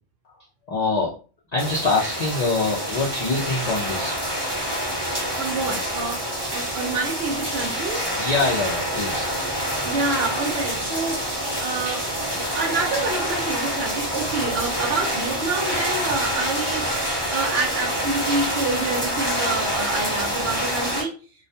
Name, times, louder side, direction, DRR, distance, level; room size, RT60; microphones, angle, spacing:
voice 1, 0.7-1.1 1.5-4.2 8.2-9.3, left 3 dB, 60° left, -3 dB, 0.4 m, -24 dB
sound 1, 1.6-21.0, equal, 25° right, 0.7 m, -27 dB
voice 2, 5.3-8.1 9.8-11.2 11.6-16.8 17.3-21.1, right 3 dB, 60° right, 1 dB, 0.8 m, -28 dB
2.3 x 2.1 x 2.6 m, 0.37 s
omnidirectional pair, 1.3 m